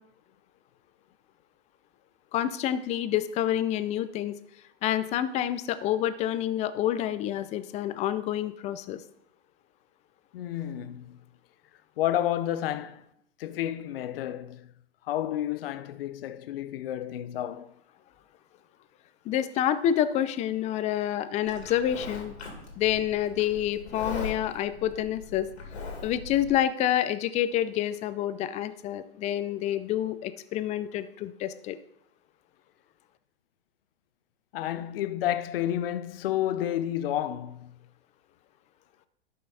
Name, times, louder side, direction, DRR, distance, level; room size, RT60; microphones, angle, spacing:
voice 1, 2.3-4.3 4.8-9.0 19.3-22.4 22.8-25.5 26.0-31.8, left 11 dB, 20° left, 0.4 m, -28 dB
voice 2, 10.3-11.2 12.0-13.1 13.4-14.7 15.0-17.7 34.5-37.7, left 12 dB, 60° left, 0.7 m, -30 dB
Livestock farm animals working animals, 21.5-26.5, left 4 dB, 85° left, 2.4 m, -40 dB
12.0 x 5.6 x 4.1 m
hypercardioid pair, 120°, 32 cm